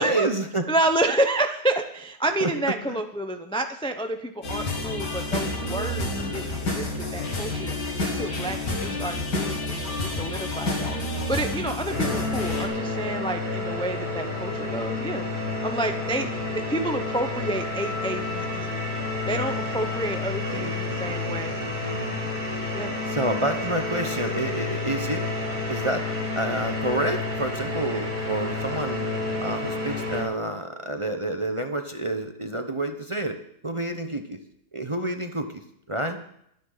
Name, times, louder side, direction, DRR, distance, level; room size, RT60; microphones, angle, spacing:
voice 1, 0.0-0.7 2.4-2.5 2.9-3.0 16.1-16.3 20.5-22.3 23.1-25.2 25.7-26.1 26.4-29.1 29.4-33.4 33.6-34.4 34.7-36.2, right 1 dB, 25° right, 6 dB, 0.7 m, -29 dB
voice 2, 0.7-7.7 8.0-9.9 10.2-15.3 15.6-18.7 19.3-21.5 22.7-22.9, right 1 dB, 5° left, 6 dB, 0.4 m, -29 dB
sound 1, 4.4-12.7, left 2 dB, 85° left, 2.9 m, -29 dB
sound 2, 11.9-30.2, left 3 dB, 80° right, 4.5 m, -30 dB
22.5 x 9.3 x 4.0 m, 0.73 s
omnidirectional pair, 1.8 m